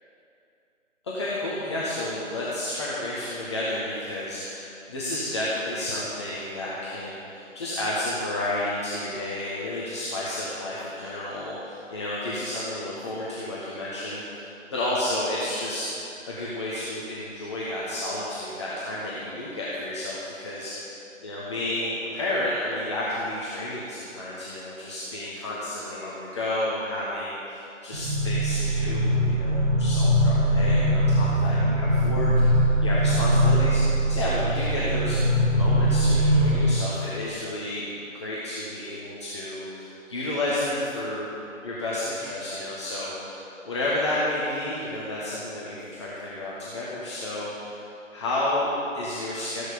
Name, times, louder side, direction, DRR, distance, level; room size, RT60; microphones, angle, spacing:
voice 1, 1.0-14.4 14.7-21.0 21.2-35.2 35.5-37.9 38.2-41.3 41.6-47.8 48.1-49.7, left 1 dB, 20° left, -8 dB, 1.4 m, -31 dB
sound 1, 27.9-36.7, equal, 50° right, 2.8 m, -21 dB
15.0 x 11.0 x 5.2 m, 2.7 s
figure-of-eight pair, 150°, 39 cm